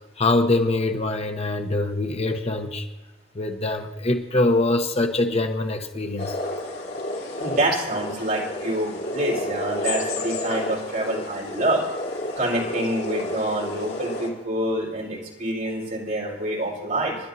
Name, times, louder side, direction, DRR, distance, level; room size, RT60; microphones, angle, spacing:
voice 1, 0.2-2.9 3.3-6.4, left 2 dB, 35° left, 5 dB, 0.9 m, -23 dB
sound 1, 6.2-14.3, left 1 dB, 60° left, 3.4 m, -31 dB
voice 2, 7.4-11.8 12.4-17.2, right 1 dB, 50° right, -3 dB, 4.3 m, -26 dB
29.5 x 11.5 x 2.7 m, 1.1 s
head